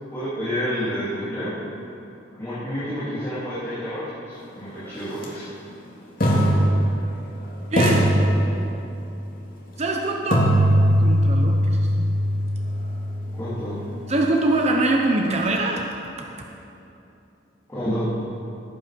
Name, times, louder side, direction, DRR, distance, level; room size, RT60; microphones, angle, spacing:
voice 1, 0.1-1.5 2.4-5.4 13.4-13.8 17.7-18.1, equal, 15° left, -13 dB, 3.5 m, -29 dB
sound 1, 5.1-5.2 6.2-7.4 7.8-9.0 10.3-14.2, equal, 50° left, 2.7 m, -21 dB
voice 2, 7.7-8.0 9.8-10.5 11.0-12.1 14.1-15.8 16.2-16.3, right 2 dB, 35° right, 1 dB, 1.0 m, -23 dB
18.5 x 8.9 x 5.3 m, 2.8 s
head